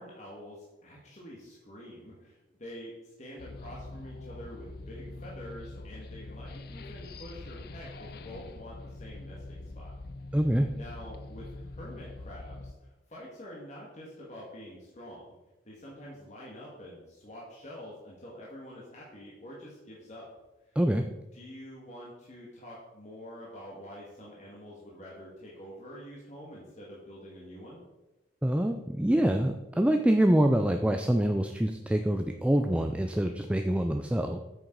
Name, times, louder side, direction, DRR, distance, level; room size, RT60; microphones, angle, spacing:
voice 1, 0.0-9.9 10.3-10.4 10.7-15.4 15.6-20.3 20.6-20.8 21.3-27.8, equal, 40° left, -5 dB, 2.0 m, -47 dB
sound 1, 3.4-12.7, left 2 dB, 60° left, 0.5 m, -44 dB
voice 2, 10.3-10.7 20.8-21.0 28.4-34.4, right 1 dB, 5° right, 5 dB, 0.4 m, -25 dB
8.9 x 6.5 x 4.6 m, 1.0 s
head